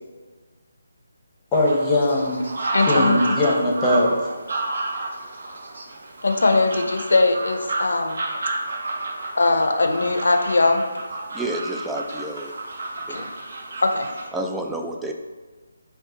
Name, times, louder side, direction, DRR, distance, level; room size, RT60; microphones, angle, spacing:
voice 1, 1.5-2.4 2.9-4.2, left 1 dB, 15° left, -3 dB, 0.9 m, -20 dB
sound 1, 1.5-14.3, right 2 dB, 60° right, 1.0 m, -30 dB
voice 2, 2.7-3.3 6.2-8.2 9.4-10.8 13.1-13.3 13.8-14.1, left 3 dB, 65° left, 5 dB, 0.6 m, -20 dB
voice 3, 11.3-12.5 13.1-13.3 14.3-15.1, right 1 dB, 5° right, 2 dB, 0.3 m, -29 dB
5.5 x 2.4 x 3.8 m, 1.4 s
figure-of-eight pair, 150°, 0 cm